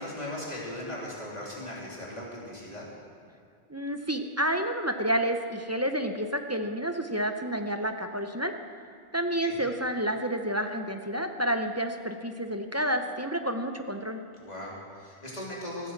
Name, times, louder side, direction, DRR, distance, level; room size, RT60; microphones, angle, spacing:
voice 1, 0.0-2.9 9.4-9.7 14.4-15.9, left 1 dB, 40° left, -5 dB, 3.4 m, -38 dB
voice 2, 3.7-8.5 9.1-14.2, right 1 dB, 20° right, 6 dB, 0.6 m, -29 dB
15.0 x 9.5 x 7.3 m, 2.3 s
omnidirectional pair, 1.1 m